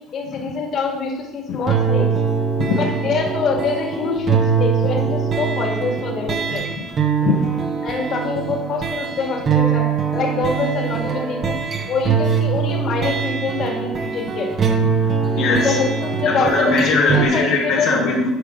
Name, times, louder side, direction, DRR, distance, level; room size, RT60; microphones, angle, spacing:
voice 1, 0.1-2.1 2.8-6.6 7.8-11.6 11.9-14.5 15.5-16.8 17.1-17.9, left 4 dB, 55° left, 0 dB, 2.0 m, -25 dB
sound 1, 1.7-17.3, right 6 dB, 45° right, 1.3 m, -22 dB
voice 2, 7.2-7.6 15.1-15.8 16.2-18.3, left 3 dB, 75° left, -4 dB, 1.4 m, -20 dB
9.4 x 5.2 x 3.8 m, 1.0 s
hypercardioid pair, 75°, 0 cm